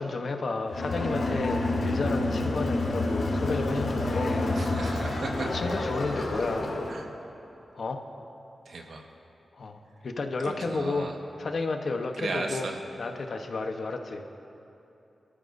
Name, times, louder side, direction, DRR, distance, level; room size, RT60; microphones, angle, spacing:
voice 1, 0.0-4.6 5.0-5.2 5.5-6.8 7.7-8.0 9.5-11.1 11.4-12.7 13.0-14.3, left 3 dB, 55° left, 5 dB, 0.9 m, -32 dB
Crowd, 0.7-7.0, left 2 dB, 75° left, 2.5 m, -29 dB
voice 2, 4.5-5.6 6.9-7.0 8.6-9.0 10.4-11.1 12.2-12.7, right 3 dB, 70° right, 2 dB, 1.4 m, -35 dB
26.0 x 13.5 x 2.6 m, 2.9 s
wide cardioid pair, 155°, 0 cm